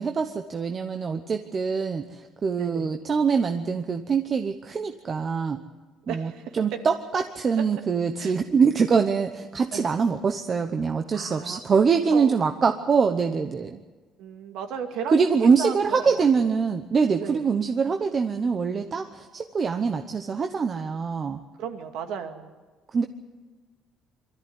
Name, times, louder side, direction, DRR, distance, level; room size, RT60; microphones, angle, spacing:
voice 1, 0.0-5.6 6.1-13.8 15.1-21.4 22.9-23.0, right 5 dB, 30° right, 6 dB, 0.9 m, -24 dB
voice 2, 2.6-2.9 6.0-6.8 8.2-8.4 9.7-9.9 11.1-11.6 12.1-12.4 14.2-15.8 16.0-16.5 17.2-17.5 21.6-22.6, right 7 dB, 75° right, 6 dB, 2.2 m, -35 dB
23.5 x 14.0 x 9.6 m, 1.3 s
cardioid pair, 150°, 0 cm